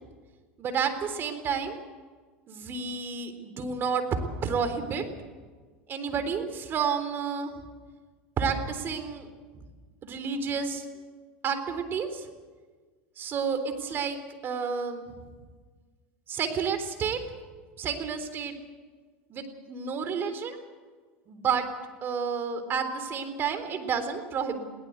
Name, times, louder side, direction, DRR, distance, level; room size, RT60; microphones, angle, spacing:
voice 1, 0.6-1.8 2.5-4.0 4.4-5.1 5.9-7.5 8.4-9.3 10.0-10.9 11.4-12.3 13.2-14.2 14.4-15.1 16.3-17.2 17.8-18.6 19.3-20.6 21.3-21.7 22.0-24.6, right 6 dB, 40° right, 9 dB, 3.7 m, -30 dB
22.0 x 17.5 x 8.2 m, 1.5 s
hypercardioid pair, 95°, 6 cm